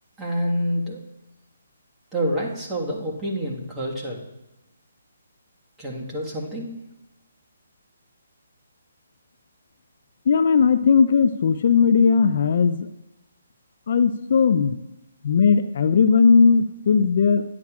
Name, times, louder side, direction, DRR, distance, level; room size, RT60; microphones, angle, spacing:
voice 1, 0.2-1.0 2.1-4.2 5.8-6.7, equal, 10° right, -4 dB, 1.5 m, -27 dB
voice 2, 10.3-12.9 13.9-14.8 15.2-17.4, left 5 dB, 55° left, 11 dB, 0.3 m, -18 dB
10.5 x 9.5 x 2.4 m, 0.92 s
hypercardioid pair, 155°, 0 cm